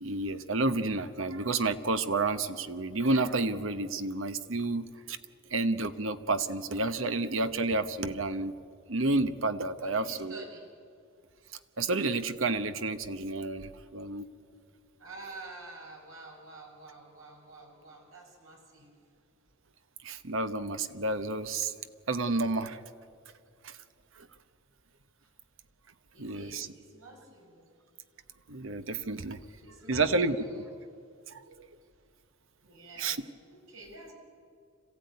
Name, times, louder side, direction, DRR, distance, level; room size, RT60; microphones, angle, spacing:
voice 1, 0.0-5.2 5.5-8.5 8.9-10.4 11.8-14.3 20.0-21.7 22.1-22.8 23.6-23.8 24.2-24.3 26.2-26.7 28.5-29.4 29.9-30.6 31.3-31.7 33.0-33.2, right 3 dB, 70° right, 11 dB, 1.0 m, -30 dB
voice 2, 9.8-10.7 15.0-18.9 25.2-25.3 26.1-27.7 29.6-30.7 32.6-33.2 33.5-34.1, right 2 dB, 85° right, 0 dB, 5.7 m, -49 dB
26.5 x 15.5 x 9.5 m, 2.3 s
head